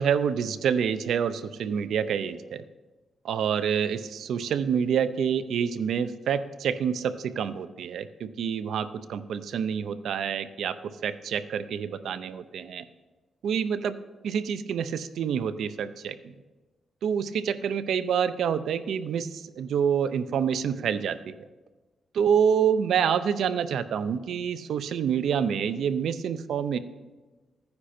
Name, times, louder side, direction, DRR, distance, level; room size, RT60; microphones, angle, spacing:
voice 1, 0.0-2.6 3.2-12.9 13.4-14.0 14.2-16.3 17.0-21.3 22.1-26.8, right 7 dB, 80° right, 12 dB, 0.6 m, -27 dB
14.5 x 9.7 x 4.4 m, 1.2 s
wide cardioid pair, 145°, 0 cm